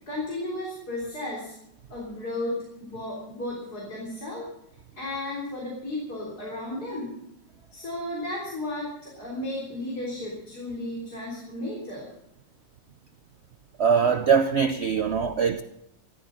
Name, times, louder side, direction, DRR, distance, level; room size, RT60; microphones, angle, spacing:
voice 1, 0.1-1.5 1.9-4.5 5.0-7.1 7.7-12.1, left 1 dB, 55° left, 4.2 m, -34 dB
voice 2, 13.8-15.6, right 6 dB, 70° right, 0.6 m, -22 dB
14.0 x 13.0 x 6.4 m
omnidirectional pair, 2.0 m